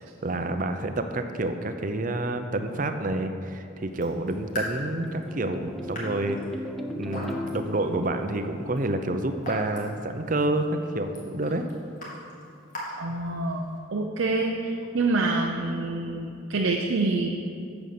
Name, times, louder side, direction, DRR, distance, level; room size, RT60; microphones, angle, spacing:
voice 1, 0.0-6.4 7.0-11.7, right 2 dB, 40° right, 7 dB, 0.6 m, -28 dB
Raindrop / Drip, 3.9-13.8, left 1 dB, 45° left, 2.6 m, -41 dB
sound 1, 4.0-9.4, left 1 dB, ahead, 0.5 m, -38 dB
voice 2, 13.0-17.3, right 3 dB, 85° right, 1 dB, 0.7 m, -27 dB
9.2 x 7.2 x 6.6 m, 2.6 s
head